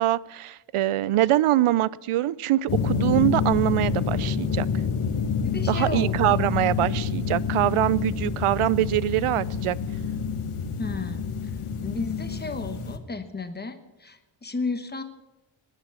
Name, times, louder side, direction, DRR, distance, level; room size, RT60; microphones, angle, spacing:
voice 1, 0.0-4.7 5.7-9.8, right 14 dB, 85° right, 21 dB, 0.6 m, -23 dB
sound 1, 2.7-13.0, left 6 dB, 80° left, 1.3 m, -27 dB
voice 2, 5.4-6.4 10.8-11.5 11.8-15.0, left 3 dB, 20° left, 8 dB, 1.2 m, -33 dB
19.5 x 9.0 x 6.9 m, 1.0 s
wide cardioid pair, 170°, 49 cm